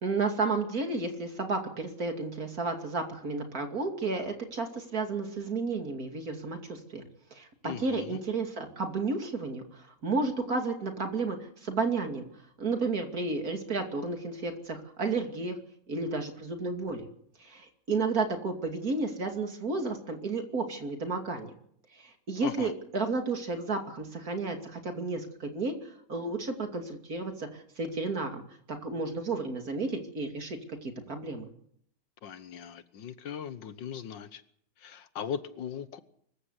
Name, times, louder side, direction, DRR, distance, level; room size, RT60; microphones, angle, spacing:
voice 1, 0.0-7.0 7.3-9.6 10.0-12.2 12.6-15.6 15.9-17.1 17.4-21.5 22.0-25.8 26.1-28.4 28.7-31.5, right 3 dB, 50° right, 5 dB, 3.0 m, -32 dB
voice 2, 7.6-8.2 22.4-22.7 32.2-34.4 34.8-36.0, left 8 dB, 75° left, 13 dB, 1.8 m, -39 dB
24.5 x 14.5 x 8.1 m, 0.67 s
omnidirectional pair, 2.0 m